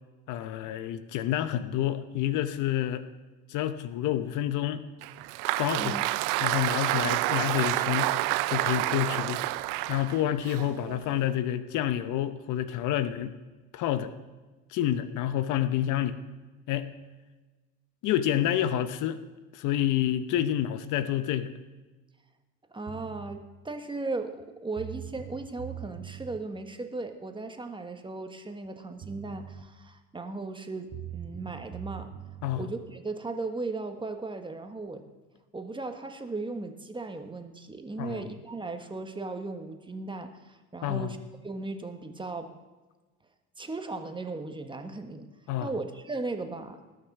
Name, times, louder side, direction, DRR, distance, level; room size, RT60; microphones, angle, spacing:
voice 1, 0.3-3.0 3.5-4.8 5.6-6.0 6.4-8.2 8.5-9.4 9.9-13.3 13.7-14.1 14.7-16.2 16.7-16.9 18.0-19.2 19.5-21.5 32.4-32.7 38.0-38.2 40.8-41.1 45.5-45.7, left 12 dB, 65° left, 12 dB, 0.9 m, -28 dB
Applause, 5.0-11.3, right 18 dB, 70° right, 0.5 m, -29 dB
voice 2, 22.7-32.1 32.5-35.0 35.5-41.2 41.4-42.5 43.6-45.3 45.6-46.8, right 3 dB, 15° right, 6 dB, 1.4 m, -37 dB
sound 1, 22.9-23.4 24.4-24.5 24.8-26.4 28.7-28.8 29.0-29.7 30.9-32.7, right 11 dB, 45° right, 1.1 m, -42 dB
19.5 x 6.7 x 6.0 m, 1.2 s
supercardioid pair, 90°, 33 cm